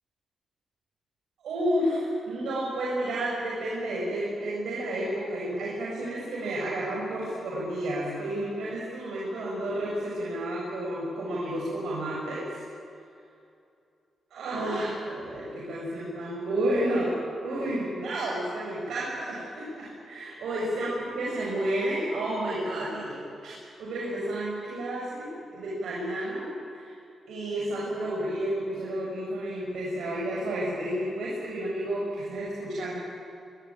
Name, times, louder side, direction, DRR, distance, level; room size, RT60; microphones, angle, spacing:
voice 1, 1.4-12.4 14.3-23.5 23.8-27.0 27.3-32.9, right 1 dB, 85° right, -5 dB, 6.8 m, -31 dB
23.0 x 23.0 x 8.9 m, 2.5 s
wide cardioid pair, 180°, 0 cm